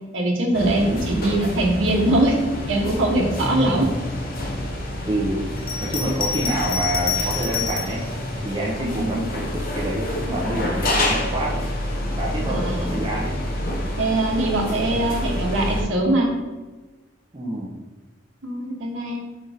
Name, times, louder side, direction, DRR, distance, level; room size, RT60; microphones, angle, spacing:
voice 1, 0.1-2.4 2.7-3.9 8.8-9.2 12.4-13.0 14.0-16.3 18.4-19.2, right 1 dB, 85° right, 0 dB, 0.9 m, -22 dB
sound 1, 0.5-15.8, left 1 dB, 50° left, 0.8 m, -28 dB
voice 2, 0.9-1.3 3.4-3.8 5.1-5.4 5.8-8.0 8.4-11.7 12.2-13.4 17.3-17.7, right 1 dB, 25° right, -3 dB, 0.6 m, -27 dB
Bell, 5.6-8.0 8.8-9.7, left 7 dB, 30° left, 0.3 m, -28 dB
4.2 x 2.6 x 4.7 m, 1.3 s
head